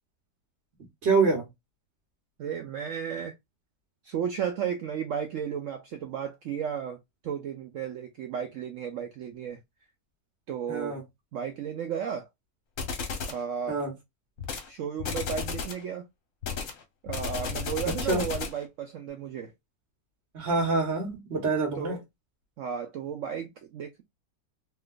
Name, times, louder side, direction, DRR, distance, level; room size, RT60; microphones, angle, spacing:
voice 1, 1.0-1.4 10.7-11.0 13.7-13.9 18.0-18.2 20.3-22.0, right 4 dB, 45° right, 1.1 m, -26 dB
voice 2, 2.4-3.3 4.0-7.0 7.2-9.6 10.5-11.0 11.3-12.3 13.3-13.8 14.7-16.1 17.0-19.5 21.8-22.0 22.6-24.0, right 8 dB, 70° right, 0.7 m, -34 dB
sound 1, 12.8-13.4 14.4-14.7 15.0-15.8 16.4-18.6, left 5 dB, 60° left, 1.1 m, -33 dB
3.2 x 2.9 x 2.2 m
omnidirectional pair, 1.8 m